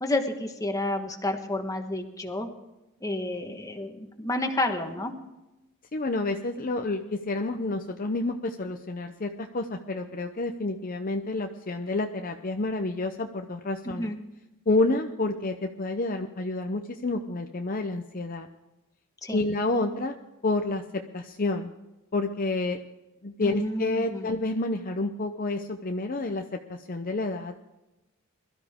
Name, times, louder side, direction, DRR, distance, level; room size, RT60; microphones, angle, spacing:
voice 1, 0.0-2.5 3.0-5.1 13.8-14.2 19.2-19.4 23.4-24.3, left 1 dB, 15° left, 4 dB, 1.4 m, -30 dB
voice 2, 5.9-14.1 14.7-18.5 19.3-20.1 20.4-20.8 21.1-21.7 22.1-22.8 23.2-26.4 26.7-27.6, left 2 dB, 40° left, 5 dB, 0.7 m, -29 dB
22.0 x 13.0 x 3.6 m, 0.98 s
head